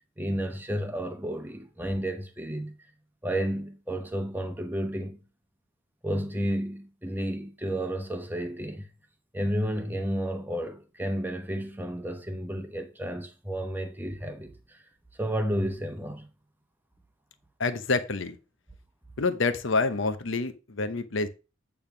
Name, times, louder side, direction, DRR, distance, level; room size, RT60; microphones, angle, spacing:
voice 1, 0.2-2.7 3.2-5.2 6.0-8.9 9.3-14.8 15.2-16.3, equal, 10° right, 0.9 m, -32 dB
voice 2, 17.6-18.4 19.2-21.3, left 3 dB, 70° left, 0.9 m, -27 dB
8.8 x 3.5 x 5.9 m
head